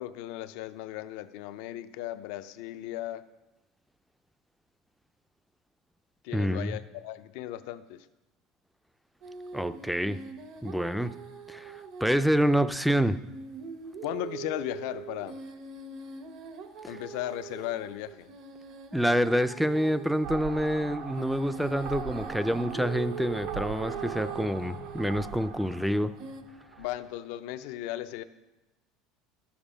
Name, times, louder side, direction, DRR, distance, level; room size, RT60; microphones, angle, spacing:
voice 1, 0.0-3.2 6.2-8.1 14.0-15.4 16.9-18.3 26.8-28.2, left 14 dB, 75° left, 11 dB, 0.6 m, -36 dB
voice 2, 6.3-6.8 9.5-10.2 10.6-11.1 11.5-13.2 16.8-17.0 18.9-26.1, equal, ahead, 13 dB, 0.4 m, -27 dB
sound 1, 9.2-12.1 12.4-12.5 13.0-20.3 21.2-25.4 26.2-26.4, right 6 dB, 55° right, 0.9 m, -42 dB
sound 2, 20.2-27.0, right 6 dB, 90° right, 1.3 m, -40 dB
11.5 x 7.3 x 5.0 m, 1.0 s
supercardioid pair, 135°, 0 cm